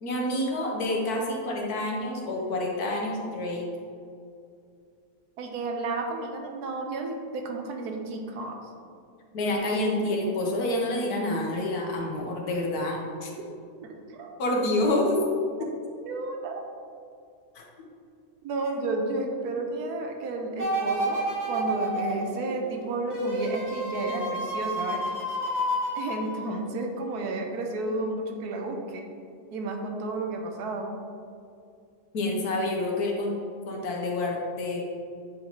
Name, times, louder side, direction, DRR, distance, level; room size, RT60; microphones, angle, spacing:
voice 1, 0.0-3.7 9.3-13.3 14.4-15.2 15.6-15.7 17.5-17.6 32.1-33.4 33.7-34.8, left 1 dB, 75° left, -1 dB, 1.5 m, -28 dB
voice 2, 5.4-8.6 13.8-14.3 15.6-15.7 16.0-16.6 18.4-25.0 25.9-29.0 29.5-31.0, right 3 dB, 85° right, 3 dB, 1.3 m, -32 dB
sound 1, 20.6-26.8 27.3-27.4, equal, 15° left, 0.8 m, -30 dB
8.4 x 4.0 x 3.0 m, 2.4 s
omnidirectional pair, 1.6 m